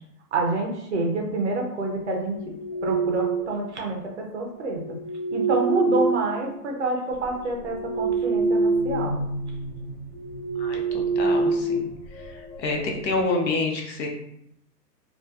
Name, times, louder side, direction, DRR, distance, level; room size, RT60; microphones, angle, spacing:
voice 1, 0.3-2.4 2.8-4.0 4.3-4.8 5.3-9.2, right 2 dB, 45° right, 0 dB, 0.4 m, -27 dB
sound 1, 2.1-3.6 4.6-6.8 7.2-9.1 9.4-9.6 10.1-12.5, right 3 dB, 35° left, 1.2 m, -26 dB
sound 2, 7.1-13.2, equal, 5° right, 1.0 m, -38 dB
voice 2, 10.6-14.1, left 3 dB, 80° left, 1 dB, 0.9 m, -28 dB
2.7 x 2.3 x 2.2 m, 0.77 s
hypercardioid pair, 160°, 50 cm